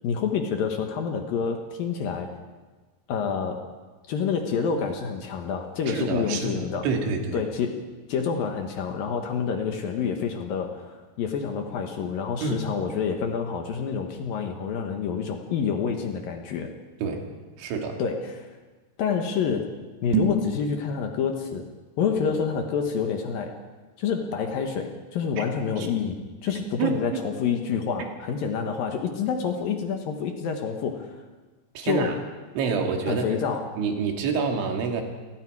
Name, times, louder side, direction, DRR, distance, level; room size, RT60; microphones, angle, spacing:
voice 1, 0.0-2.3 3.1-3.6 4.1-6.9 7.3-7.8 8.1-16.7 18.0-18.5 19.0-19.7 20.0-21.6 22.0-23.6 24.0-31.2 31.8-32.2 33.1-33.7, left 6 dB, 65° left, 4 dB, 2.6 m, -28 dB
voice 2, 5.9-7.4 12.4-12.7 17.0-17.3 17.6-18.0 25.4-25.5 25.8-25.9 26.8-27.2 28.0-28.1 31.8-32.1 32.6-33.3 33.8-35.0, right 5 dB, 85° right, 3 dB, 4.5 m, -27 dB
sound 1, 20.0-20.5, right 4 dB, 50° right, 3.0 m, -25 dB
29.5 x 18.5 x 4.8 m, 1.3 s
omnidirectional pair, 5.2 m